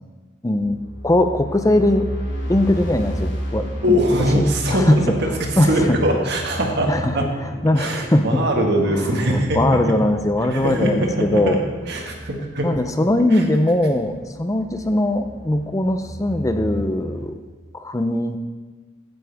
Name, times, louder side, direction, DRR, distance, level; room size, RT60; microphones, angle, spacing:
voice 1, 0.4-0.8 1.0-2.1 2.5-4.0 4.3-4.4 4.7-5.0 5.6-6.0 6.9-7.1 7.6-8.4 8.9-11.6 12.6-17.4 17.7-18.4, left 1 dB, 20° left, 8 dB, 0.5 m, -20 dB
sound 1, 0.6-6.8, right 1 dB, 80° left, 2.2 m, -31 dB
Chapel Wind, 0.6-17.3, equal, 30° right, 2.2 m, -37 dB
voice 2, 3.8-7.3 7.8-9.9 10.4-11.6 11.9-12.7 13.3-13.5, equal, 60° right, 1 dB, 1.9 m, -22 dB
15.5 x 9.5 x 3.5 m, 1.3 s
head